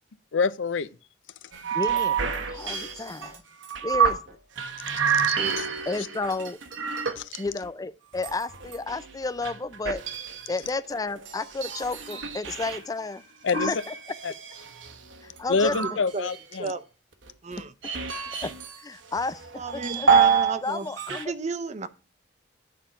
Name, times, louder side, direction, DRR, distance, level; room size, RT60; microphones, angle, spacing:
voice 1, 0.3-0.9 5.2-5.7 7.2-7.3 13.4-13.7 14.2-14.3 15.5-16.7, left 4 dB, 80° left, 0.6 m, -27 dB
sound 1, 1.5-4.3 4.6-7.7 8.1-12.8 13.5-16.5 17.3-18.8 19.1-20.6 20.9-21.2, right 6 dB, 80° right, 1.2 m, -27 dB
voice 2, 1.7-2.2 2.5-3.4 3.8-4.4 5.9-6.6 7.4-10.0 10.5-13.2 13.6-13.9 15.2-15.8 18.4-18.5 18.8-19.4 19.7-20.1 20.6-21.3, left 3 dB, 20° left, 0.4 m, -31 dB
voice 3, 17.4-17.7 19.6-20.9 21.3-21.9, right 3 dB, 40° right, 0.6 m, -32 dB
9.2 x 4.3 x 5.0 m
head